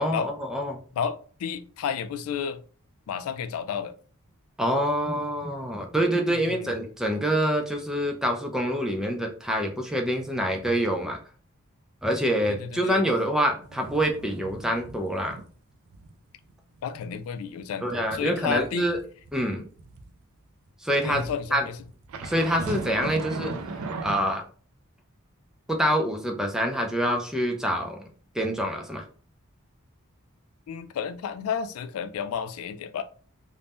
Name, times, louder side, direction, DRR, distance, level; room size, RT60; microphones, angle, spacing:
voice 1, 0.0-0.8 4.6-11.2 12.0-15.4 17.8-19.0 19.3-19.6 20.8-21.3 21.5-21.6 22.2-23.5 24.0-24.4 25.7-28.0 28.3-29.0, equal, 5° right, 0.4 m, -26 dB
voice 2, 0.9-2.6 3.1-3.9 6.3-6.7 12.5-13.1 16.8-18.9 21.0-21.8 30.7-33.0, left 7 dB, 85° left, 0.3 m, -32 dB
sound 1, 13.6-15.5 15.9-16.1 16.5-20.1 21.1-24.1, right 4 dB, 90° right, 0.4 m, -38 dB
2.6 x 2.1 x 3.4 m
head